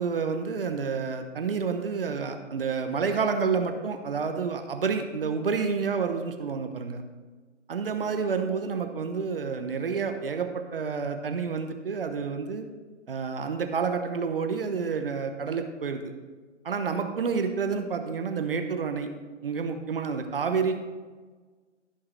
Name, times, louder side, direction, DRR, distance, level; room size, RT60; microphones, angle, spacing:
voice 1, 0.0-7.0 7.7-12.6 13.1-16.1 16.6-19.1 19.4-20.9, right 5 dB, 50° right, 6 dB, 1.0 m, -29 dB
15.5 x 5.8 x 3.3 m, 1.4 s
figure-of-eight pair, 135°, 36 cm